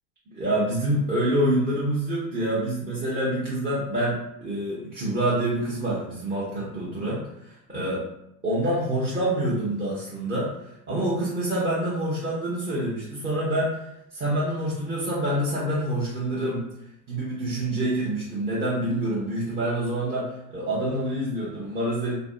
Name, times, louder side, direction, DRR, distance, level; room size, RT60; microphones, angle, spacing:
voice 1, 0.3-8.0 8.4-16.6 17.1-22.1, right 1 dB, 20° right, -7 dB, 0.6 m, -27 dB
2.5 x 2.2 x 2.3 m, 0.81 s
hypercardioid pair, 90°, 42 cm